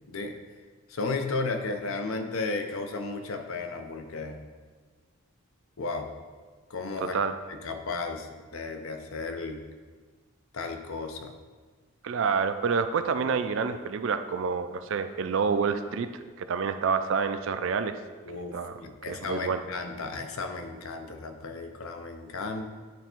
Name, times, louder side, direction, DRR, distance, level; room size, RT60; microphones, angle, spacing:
voice 1, 0.9-4.4 5.8-6.1 6.7-7.2 7.6-9.6 10.5-11.4 18.3-22.7, left 3 dB, 70° left, 6 dB, 0.7 m, -34 dB
voice 2, 7.0-7.4 12.0-18.0 18.5-19.6, right 5 dB, 60° right, 9 dB, 0.4 m, -28 dB
9.3 x 3.4 x 4.4 m, 1.4 s
head